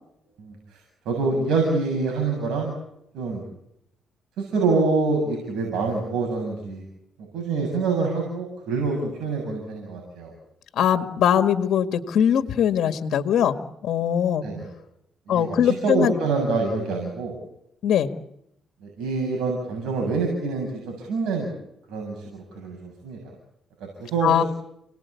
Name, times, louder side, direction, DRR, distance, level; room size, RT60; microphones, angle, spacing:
voice 1, 1.1-2.8 3.1-3.4 4.4-6.8 7.3-10.3 14.4-14.7 15.3-17.4 18.8-21.5 21.9-23.2 23.8-24.5, right 3 dB, 80° right, 1 dB, 7.6 m, -26 dB
voice 2, 10.8-13.6 13.8-14.4 15.3-16.1 17.8-18.1 24.2-24.4, left 9 dB, 70° left, 8 dB, 1.9 m, -21 dB
30.0 x 19.5 x 8.4 m, 0.79 s
cardioid pair, 90°, 0 cm